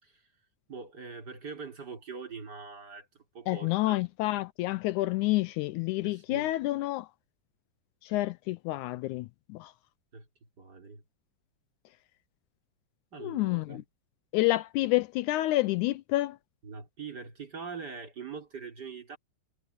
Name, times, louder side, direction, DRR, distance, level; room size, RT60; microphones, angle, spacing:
voice 1, 0.7-4.0 6.0-6.5 8.9-9.0 10.1-10.3 10.6-11.0 13.1-13.8 16.6-19.2, right 5 dB, 30° right, 4.0 m, -43 dB
voice 2, 3.5-7.1 8.0-9.7 13.2-13.8 14.3-16.4, left 18 dB, 90° left, 1.7 m, -29 dB
omnidirectional pair, 4.0 m